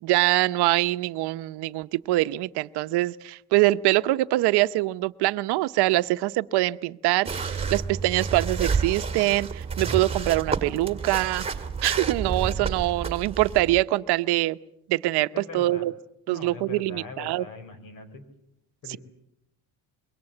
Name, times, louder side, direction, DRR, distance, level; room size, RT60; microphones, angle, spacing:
voice 1, 0.0-11.4 11.8-14.6 14.9-15.9 16.3-17.4 18.9-19.0, right 18 dB, 75° right, 12 dB, 0.9 m, -24 dB
sound 1, 7.3-13.8, right 5 dB, 15° right, 1.9 m, -30 dB
voice 2, 15.3-15.9 16.3-18.2 18.8-19.0, left 4 dB, 55° left, 11 dB, 4.6 m, -41 dB
26.0 x 22.5 x 7.8 m, 0.78 s
cardioid pair, 140°, 39 cm